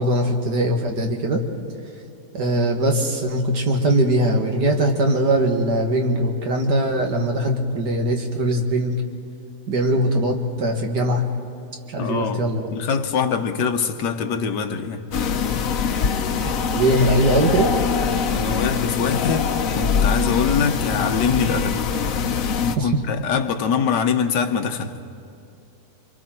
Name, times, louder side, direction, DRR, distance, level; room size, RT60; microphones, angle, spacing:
voice 1, 0.0-1.4 2.3-8.9 9.7-11.2 11.9-12.7 16.4-17.7 22.8-22.9, right 1 dB, 75° right, 2.3 m, -21 dB
voice 2, 12.0-15.0 18.3-21.8 22.8-24.9, left 6 dB, 80° left, 1.7 m, -24 dB
sound 1, 15.1-22.8, left 6 dB, 60° left, 1.2 m, -23 dB
28.0 x 24.5 x 4.5 m
omnidirectional pair, 1.8 m